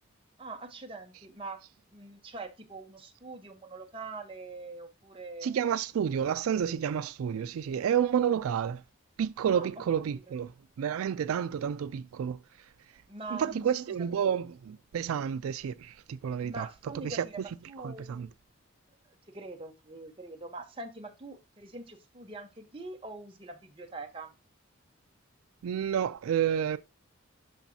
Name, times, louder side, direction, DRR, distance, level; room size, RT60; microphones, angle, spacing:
voice 1, 0.4-1.6 1.9-5.6 9.5-9.8 10.1-10.2 13.1-14.3 16.4-18.3 19.3-24.3, right 3 dB, 25° right, 1.0 m, -43 dB
voice 2, 5.4-8.8 9.2-10.5 10.8-12.4 13.3-16.7 17.0-17.3 17.8-18.3 25.6-26.8, right 8 dB, 85° right, 0.3 m, -30 dB
12.0 x 4.0 x 2.7 m
head